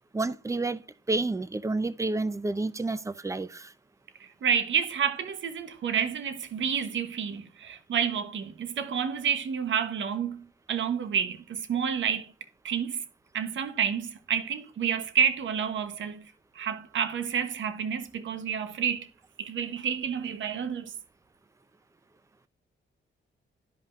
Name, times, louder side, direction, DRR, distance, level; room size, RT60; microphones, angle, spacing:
voice 1, 0.1-0.8 1.1-3.7, right 2 dB, 15° right, 0.7 m, -29 dB
voice 2, 4.4-10.4 10.7-12.3 12.6-13.0 13.3-16.2 16.6-19.1 19.4-20.9, right 7 dB, 75° right, 1.1 m, -29 dB
12.5 x 5.5 x 2.5 m
cardioid pair, 95°, 20 cm